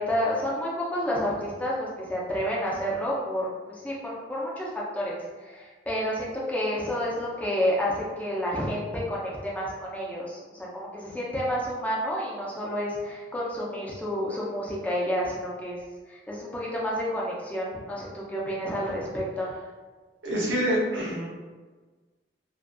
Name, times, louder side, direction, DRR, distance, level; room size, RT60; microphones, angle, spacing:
voice 1, 0.0-3.9 4.3-15.8 16.1-19.5, equal, 10° left, -5 dB, 0.4 m, -30 dB
voice 2, 20.2-21.3, equal, 80° right, -5 dB, 0.7 m, -26 dB
2.5 x 2.4 x 2.2 m, 1.4 s
head